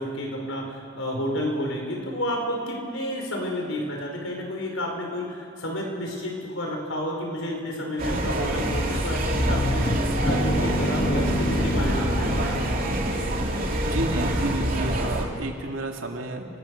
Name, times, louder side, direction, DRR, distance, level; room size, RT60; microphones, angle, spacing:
voice 1, 0.0-12.6, equal, 80° left, 1 dB, 5.2 m, -30 dB
sound 1, 8.0-15.3, right 1 dB, 45° right, 2.9 m, -26 dB
sound 2, 9.3-14.1, left 1 dB, 25° left, 0.9 m, -28 dB
voice 2, 13.9-16.5, right 1 dB, 85° right, 2 dB, 2.6 m, -31 dB
28.5 x 18.5 x 6.7 m, 2.5 s
head